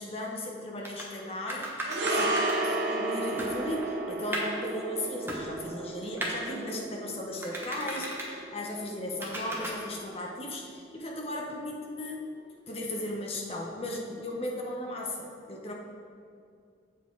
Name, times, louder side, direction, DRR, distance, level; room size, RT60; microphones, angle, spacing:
voice 1, 0.0-12.3 12.7-15.7, left 1 dB, 30° left, -1 dB, 1.0 m, -36 dB
sound 1, 0.8-1.1 1.5-2.6 3.1-3.2 3.4-4.6 5.3-5.8 6.2-6.3 7.4-8.3 9.2-9.7, right 1 dB, 10° right, 1.1 m, -35 dB
sound 2, 1.8-10.3 10.6-10.8, right 2 dB, 65° right, 0.9 m, -33 dB
7.9 x 7.4 x 4.6 m, 2.3 s
head